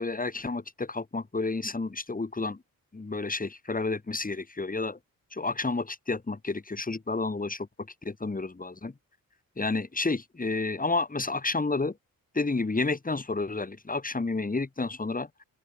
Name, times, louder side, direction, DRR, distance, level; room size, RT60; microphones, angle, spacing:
voice 1, 0.0-2.6 2.9-5.0 5.3-7.7 8.0-8.9 9.6-11.9 12.3-15.3, left 3 dB, 25° left, 2.7 m, -30 dB
open air
wide cardioid pair, 105°, 35 cm